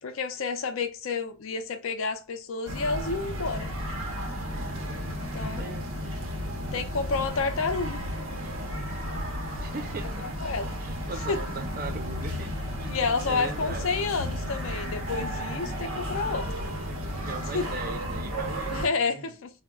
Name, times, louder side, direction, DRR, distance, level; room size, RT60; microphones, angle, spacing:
voice 1, 0.0-3.7 5.3-5.8 6.7-8.0 10.4-10.7 11.3-11.4 12.9-16.5 17.5-17.7 18.7-19.5, left 4 dB, 65° left, 0.5 m, -30 dB
sound 1, 2.6-18.9, equal, 65° right, 0.7 m, -33 dB
voice 2, 9.6-10.3 10.8-13.0 13.2-13.9 16.9-19.5, right 4 dB, 40° right, 0.4 m, -39 dB
3.5 x 2.0 x 2.2 m
head